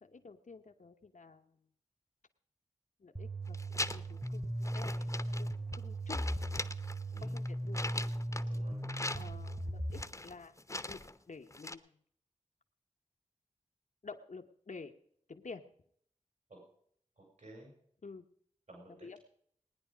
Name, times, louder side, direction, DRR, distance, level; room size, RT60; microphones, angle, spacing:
voice 1, 0.0-1.6 3.0-5.5 5.7-6.4 7.2-7.9 9.1-11.0 11.3-11.9 14.0-15.0 15.3-15.6 18.0-18.2 19.0-19.2, left 4 dB, 75° left, 5 dB, 1.0 m, -50 dB
sound 1, 3.2-10.0, right 1 dB, 20° right, 1.1 m, -38 dB
sound 2, 3.5-4.3 4.6-5.8 6.1-8.6 8.8-9.6 9.9-11.2 11.5-11.8, left 2 dB, 25° left, 0.8 m, -41 dB
voice 2, 8.5-8.8 16.5-16.6 17.2-17.7 18.7-19.2, right 1 dB, 70° right, 0 dB, 5.3 m, -54 dB
19.0 x 10.0 x 5.1 m, 0.66 s
wide cardioid pair, 70°, 13 cm